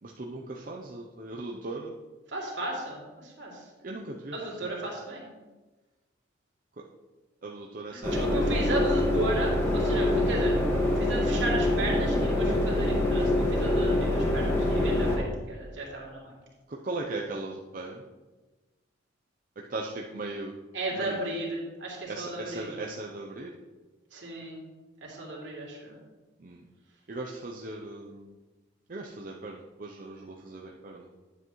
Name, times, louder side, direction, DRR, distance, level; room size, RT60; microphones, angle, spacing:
voice 1, 0.0-1.9 3.8-4.7 6.8-6.9 7.4-8.5 16.7-18.0 19.6-20.5 20.9-21.2 22.1-23.5 26.4-26.6 27.1-28.4 28.9-31.1, right 2 dB, 45° right, -1 dB, 0.6 m, -38 dB
voice 2, 2.3-3.7 4.3-5.3 7.9-10.6 10.9-16.3 20.7-22.7 24.1-24.6 25.0-26.0, right 2 dB, 70° right, -4 dB, 2.7 m, -34 dB
sound 1, 8.0-15.2, left 1 dB, 15° left, 1.6 m, -25 dB
9.9 x 7.8 x 3.1 m, 1.2 s
head